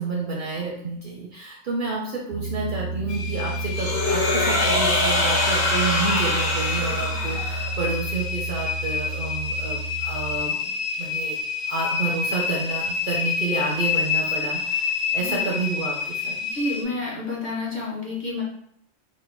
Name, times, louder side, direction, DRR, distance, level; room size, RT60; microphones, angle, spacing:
voice 1, 0.0-11.4 11.7-16.3, right 3 dB, 60° right, -2 dB, 0.6 m, -30 dB
Piano, 2.3-10.4, right 3 dB, 90° right, 1.0 m, -31 dB
sound 1, 3.1-16.8, left 6 dB, 85° left, 0.9 m, -29 dB
sound 2, 3.7-7.8, left 2 dB, 65° left, 1.2 m, -24 dB
voice 2, 16.5-18.4, left 2 dB, 45° left, -5 dB, 0.8 m, -29 dB
3.2 x 2.1 x 3.2 m, 0.69 s
omnidirectional pair, 1.2 m